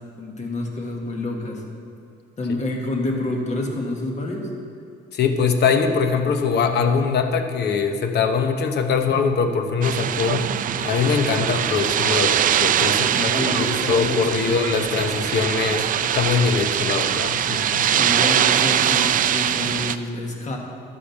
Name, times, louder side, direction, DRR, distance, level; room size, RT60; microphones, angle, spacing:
voice 1, 0.2-1.6 2.4-4.5 9.0-9.2 11.3-11.5 13.0-14.5 17.9-20.6, left 2 dB, 40° left, 1 dB, 1.8 m, -28 dB
voice 2, 5.1-10.5 10.8-18.1, left 5 dB, 65° left, 7 dB, 0.9 m, -22 dB
sound 1, 9.8-20.0, right 10 dB, 45° right, 0.4 m, -22 dB
12.0 x 5.1 x 7.2 m, 2.4 s
cardioid pair, 90°, 19 cm